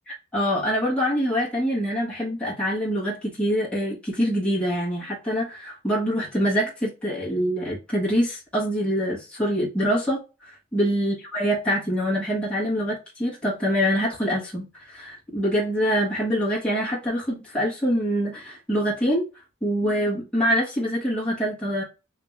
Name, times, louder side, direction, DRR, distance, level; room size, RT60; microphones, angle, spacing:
voice 1, 0.1-19.2 19.6-21.8, equal, 5° left, 1.4 m, -25 dB
3.5 x 2.9 x 3.4 m
head